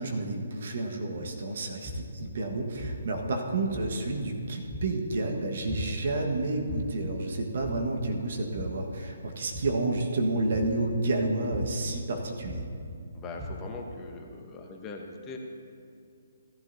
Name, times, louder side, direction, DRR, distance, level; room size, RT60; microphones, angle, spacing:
voice 1, 0.0-12.6, right 2 dB, 55° right, 2 dB, 1.5 m, -30 dB
sound 1, 1.1-1.3 1.8-2.3 2.8-3.2 3.7-4.1 4.7-5.1 5.7-6.1 6.7-7.1 7.6-8.1 8.6-9.0 9.5-9.9 10.5-10.9 11.5-11.9 12.4-12.9 13.4-13.8, left 1 dB, ahead, 1.4 m, -38 dB
voice 2, 13.1-15.4, left 3 dB, 20° left, 1 dB, 1.1 m, -41 dB
16.0 x 11.5 x 2.8 m, 2.5 s
figure-of-eight pair, 140°, 0 cm